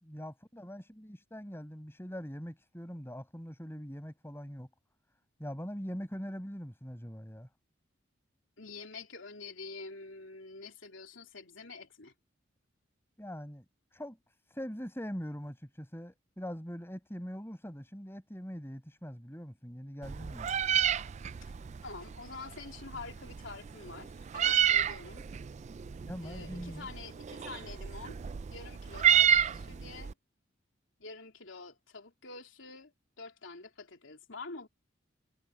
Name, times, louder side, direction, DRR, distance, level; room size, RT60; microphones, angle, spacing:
voice 1, 0.0-4.7 5.4-7.5 13.2-13.6 13.9-14.2 14.5-20.5 26.0-26.9, equal, 10° left, 5.8 m, -42 dB
voice 2, 8.6-12.1 21.4-21.5 21.8-25.2 26.2-28.2 28.5-30.1 31.0-34.7, left 3 dB, 75° left, 3.6 m, -47 dB
Meow, 20.0-30.1, right 9 dB, 35° right, 0.3 m, -31 dB
head